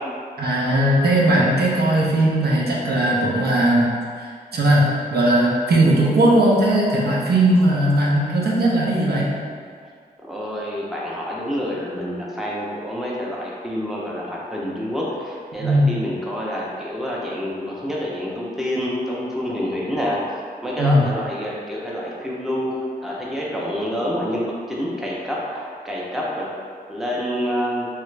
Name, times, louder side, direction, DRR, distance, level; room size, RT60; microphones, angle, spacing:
voice 1, 0.4-3.9 4.2-9.3 15.6-16.0 20.8-21.1, right 1 dB, 75° right, -4 dB, 0.7 m, -18 dB
voice 2, 10.3-20.2 20.6-22.7 23.0-26.5 26.9-27.9, equal, ahead, -5 dB, 0.5 m, -27 dB
3.2 x 2.4 x 3.1 m, 2.1 s
wide cardioid pair, 105°, 16 cm